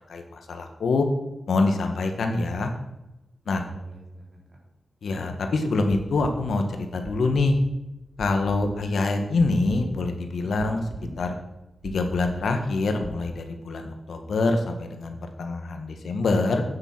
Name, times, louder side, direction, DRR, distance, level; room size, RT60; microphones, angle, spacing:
voice 1, 0.1-1.1 1.5-2.7 3.4-3.6 5.0-7.6 8.2-10.8 11.2-11.3 11.8-16.6, left 3 dB, 90° left, 5 dB, 1.6 m, -25 dB
voice 2, 2.1-2.4 3.6-4.6 10.4-11.2, right 1 dB, 40° right, -2 dB, 3.5 m, -44 dB
sound 1, 6.2-13.2, right 4 dB, 55° right, 1.2 m, -42 dB
9.3 x 7.7 x 6.2 m, 0.95 s
wide cardioid pair, 170°, 0 cm